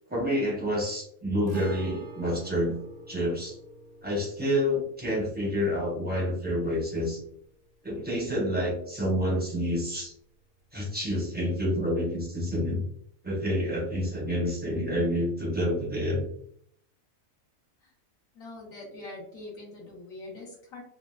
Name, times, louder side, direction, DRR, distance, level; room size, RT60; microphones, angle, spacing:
voice 1, 0.1-2.8 3.1-3.6 4.0-7.2 7.8-10.1 10.7-12.8 13.2-16.2, equal, 10° right, -4 dB, 0.5 m, -28 dB
Guitar, 1.5-9.1 9.4-9.5 11.5-11.6, right 2 dB, 85° right, 1.4 m, -48 dB
voice 2, 18.3-20.8, left 2 dB, 80° left, -6 dB, 1.3 m, -43 dB
3.4 x 2.2 x 2.3 m, 0.66 s
omnidirectional pair, 1.4 m